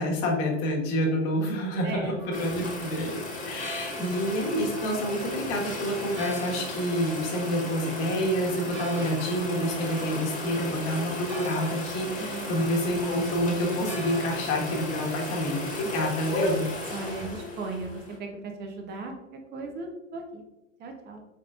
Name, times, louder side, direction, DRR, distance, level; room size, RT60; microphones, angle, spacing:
voice 1, 0.0-3.2 3.4-16.6, equal, 40° left, -1 dB, 1.2 m, -28 dB
voice 2, 1.8-2.2 4.0-4.1 12.2-12.5 15.8-16.1 16.9-19.1 19.5-20.4 20.8-21.2, right 3 dB, 25° right, 3 dB, 0.7 m, -37 dB
Church bell, 2.0-14.4, right 3 dB, 85° right, 1.3 m, -44 dB
sound 1, 2.3-18.2, left 2 dB, 20° left, 1.3 m, -35 dB
3.7 x 3.5 x 2.3 m, 0.99 s
hypercardioid pair, 115°, 38 cm